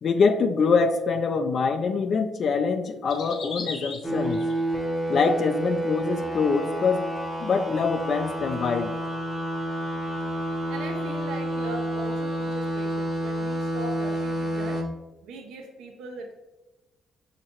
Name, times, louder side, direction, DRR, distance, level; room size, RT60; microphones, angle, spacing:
voice 1, 0.0-4.4 5.1-7.0 7.4-8.9, left 5 dB, 55° left, 7 dB, 0.3 m, -24 dB
sound 1, 3.1-4.8 5.3-5.8 6.2-6.3 7.1-7.2 7.5-7.6 8.5-8.6, left 4 dB, 80° left, 0.7 m, -38 dB
sound 2, 4.0-14.8, right 1 dB, ahead, 0.8 m, -29 dB
voice 2, 10.3-14.8 15.2-16.3, right 2 dB, 85° right, 3 dB, 0.6 m, -40 dB
6.1 x 2.9 x 2.8 m, 1.1 s
cardioid pair, 90°, 0 cm